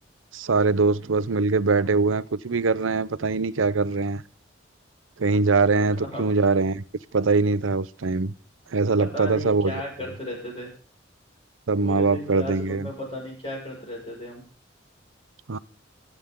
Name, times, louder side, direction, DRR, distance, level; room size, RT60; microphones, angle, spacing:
voice 1, 0.3-4.2 5.2-6.8 7.1-8.3 8.7-9.8 11.7-12.9 15.5-15.6, right 3 dB, 85° right, 0.7 m, -22 dB
voice 2, 9.0-10.7 11.8-14.4, equal, 30° left, 5.9 m, -35 dB
25.0 x 9.2 x 3.7 m
head